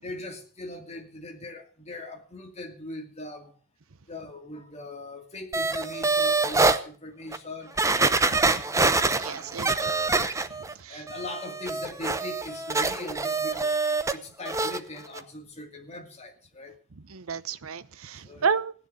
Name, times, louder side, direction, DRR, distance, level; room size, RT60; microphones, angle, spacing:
voice 1, 0.0-3.5 4.1-8.5 9.2-9.6 10.9-16.8 18.2-18.6, left 2 dB, 30° left, 2.5 m, -40 dB
sound 1, 5.5-6.8 7.3-7.4 7.8-10.7 11.1-14.2 14.4-14.8 15.1-15.2, right 3 dB, 15° right, 0.8 m, -25 dB
voice 2, 9.1-9.9 10.2-10.3 10.8-11.0 17.1-18.7, right 6 dB, 65° right, 0.8 m, -31 dB
16.5 x 10.0 x 6.7 m
head